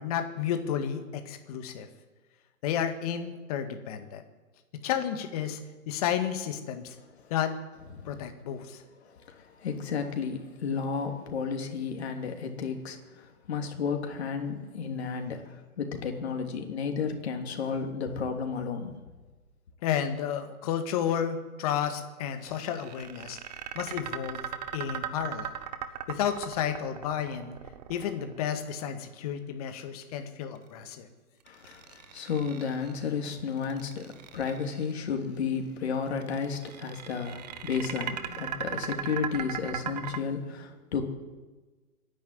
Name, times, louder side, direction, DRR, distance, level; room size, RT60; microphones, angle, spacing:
voice 1, 0.0-1.9 2.6-4.2 4.8-5.6 5.9-7.0 7.3-7.5 8.1-8.8 19.8-23.4 23.8-24.4 24.7-25.5 26.1-27.6 27.9-31.1, left 9 dB, 25° left, 7 dB, 1.8 m, -31 dB
voice 2, 7.9-8.3 9.0-18.9 31.5-41.0, left 6 dB, 45° left, 4 dB, 3.3 m, -33 dB
sound 1, 22.4-28.6 31.5-33.0 33.6-34.9 36.2-40.2, right 9 dB, 30° right, 1.1 m, -38 dB
25.0 x 11.0 x 9.7 m, 1.3 s
hypercardioid pair, 150°, 44 cm